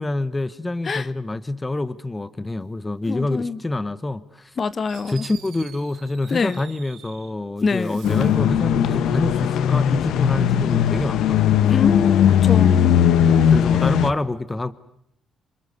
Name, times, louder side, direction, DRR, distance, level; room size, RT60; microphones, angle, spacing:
voice 1, 0.0-4.6 5.1-11.6 13.2-14.7, left 2 dB, 20° left, 1.1 m, -27 dB
voice 2, 3.1-3.6 4.6-5.1 6.3-6.6 7.6-8.0 11.7-12.9, left 5 dB, 40° left, 1.1 m, -25 dB
Fireworks, 4.5-4.6 4.9-7.3 7.7-8.5, right 10 dB, 85° right, 4.1 m, -46 dB
sound 1, 8.0-14.1, left 9 dB, 80° left, 1.1 m, -18 dB
27.5 x 25.0 x 8.1 m
cardioid pair, 90°, 0 cm